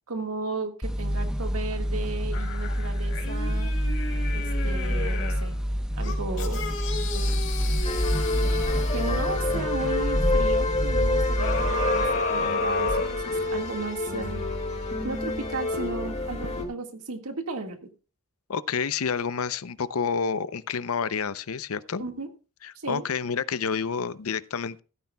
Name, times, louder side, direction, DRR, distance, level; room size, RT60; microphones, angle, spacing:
voice 1, 0.1-3.7 4.3-5.6 6.0-6.7 7.1-7.3 8.4-8.5 8.9-14.4 15.0-17.9 22.0-22.3 22.8-23.1, right 3 dB, 85° right, 1.8 m, -35 dB
sound 1, 0.8-13.4, equal, 5° right, 0.9 m, -28 dB
sound 2, 2.3-5.5 6.0-9.7 11.4-13.7 14.2-14.3, left 3 dB, 55° left, 2.8 m, -32 dB
Relaxing Background Music, 7.8-16.6, left 2 dB, 30° left, 2.1 m, -29 dB
voice 2, 18.5-22.0 22.6-24.8, left 6 dB, 80° left, 0.6 m, -29 dB
16.0 x 13.5 x 2.3 m
head